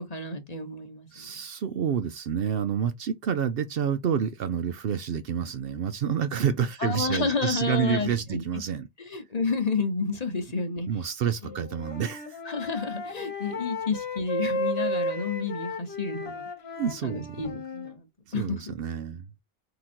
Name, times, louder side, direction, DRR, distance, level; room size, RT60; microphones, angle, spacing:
voice 1, 0.0-1.3 6.8-8.4 9.0-10.9 11.4-11.5 12.4-16.5 17.0-18.1 18.3-18.7, left 4 dB, 35° left, 1.0 m, -30 dB
voice 2, 1.1-8.9 10.9-12.4 16.8-17.4 18.3-19.3, right 8 dB, 60° right, 0.6 m, -28 dB
Wind instrument woodwind instrument, 11.5-17.9, left 1 dB, 55° left, 1.4 m, -33 dB
3.8 x 2.9 x 4.3 m
omnidirectional pair, 1.3 m